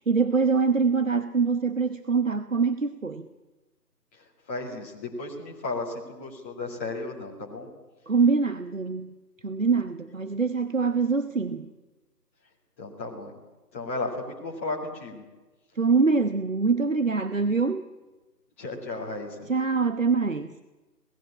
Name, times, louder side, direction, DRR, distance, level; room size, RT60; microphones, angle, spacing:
voice 1, 0.0-3.3 8.1-9.1 9.4-11.7 15.8-17.8 19.5-20.5, right 4 dB, 50° right, 11 dB, 1.0 m, -24 dB
voice 2, 4.1-7.7 12.8-13.3 13.7-15.2 18.6-19.5, left 2 dB, 10° left, -5 dB, 2.2 m, -34 dB
26.0 x 18.5 x 8.7 m, 1.2 s
figure-of-eight pair, 165°, 50 cm